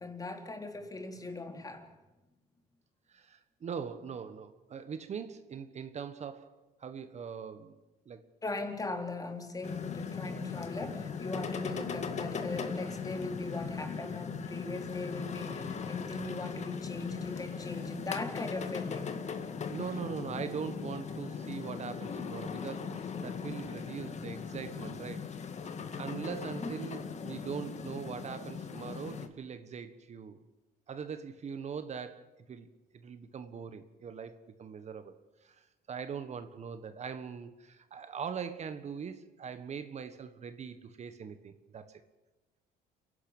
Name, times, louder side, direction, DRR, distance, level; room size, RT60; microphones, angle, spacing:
voice 1, 0.0-1.9 8.4-19.2, left 2 dB, 20° left, 3.5 m, -39 dB
voice 2, 3.1-6.5 6.8-7.7 8.0-8.3 11.7-12.0 19.7-25.4 26.0-30.4 30.9-32.7 32.9-35.1 35.4-42.0, right 6 dB, 40° right, 1.4 m, -41 dB
sound 1, 9.6-29.3, left 6 dB, 40° left, 2.0 m, -39 dB
28.0 x 11.5 x 8.8 m
cardioid pair, 110°, 17 cm